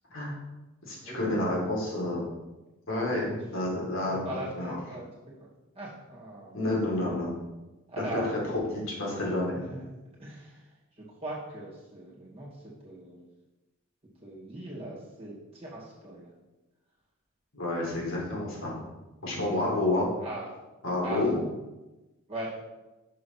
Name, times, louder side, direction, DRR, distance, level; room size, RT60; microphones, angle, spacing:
voice 1, 0.8-2.2 2.9-4.2 4.6-4.8 6.5-7.3 8.0-8.2 8.7-9.6 17.5-18.8 19.2-20.1 20.8-21.4, left 2 dB, 75° left, -3 dB, 2.2 m, -29 dB
voice 2, 4.1-5.1 5.7-6.6 7.9-8.3 9.5-9.8 10.2-13.2 14.2-16.3 20.2-20.5 21.0-21.3 22.3-22.5, right 1 dB, 30° right, -6 dB, 2.2 m, -40 dB
6.5 x 3.9 x 5.9 m, 1.1 s
head